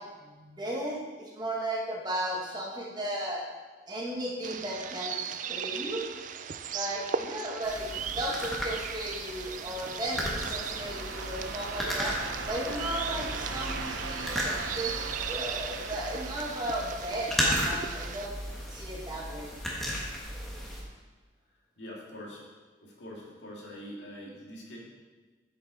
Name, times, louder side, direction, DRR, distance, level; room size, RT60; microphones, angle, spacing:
voice 1, 0.0-3.5 3.9-6.1 6.7-15.0 15.3-18.4 18.7-19.5, right 1 dB, 20° right, -3 dB, 1.3 m, -35 dB
sound 1, 4.4-18.3, right 7 dB, 40° right, 0.3 m, -38 dB
sound 2, 7.6-20.8, equal, ahead, 1.3 m, -35 dB
sound 3, 9.1-17.5, right 3 dB, 80° right, 0.8 m, -40 dB
voice 2, 21.8-22.5 22.8-24.8, equal, 70° left, -3 dB, 2.1 m, -44 dB
8.2 x 7.7 x 4.1 m, 1.3 s
head